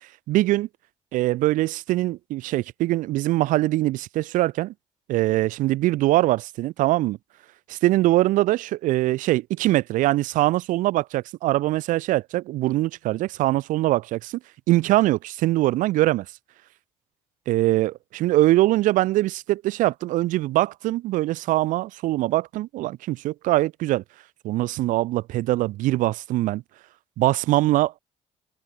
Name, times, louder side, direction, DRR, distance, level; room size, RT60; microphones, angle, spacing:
voice 1, 0.3-0.7 1.1-4.7 5.1-7.2 7.7-14.3 14.7-16.3 17.5-24.0 24.4-26.6 27.2-28.0, right 17 dB, 80° right, 2.1 m, -22 dB
cardioid pair, 85°, 13 cm